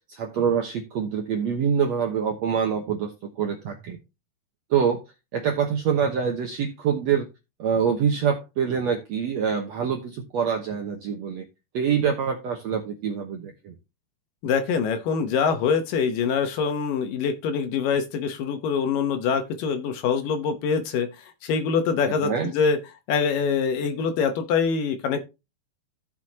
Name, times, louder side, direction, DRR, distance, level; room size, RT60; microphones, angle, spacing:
voice 1, 0.1-4.0 4.7-5.0 5.3-7.3 7.6-11.5 11.7-13.7 22.2-22.5, right 7 dB, 70° right, 3 dB, 1.6 m, -25 dB
voice 2, 14.4-21.1 21.4-22.8 23.1-25.2, left 6 dB, 70° left, 7 dB, 2.4 m, -24 dB
15.0 x 6.1 x 2.8 m, 0.26 s
omnidirectional pair, 4.4 m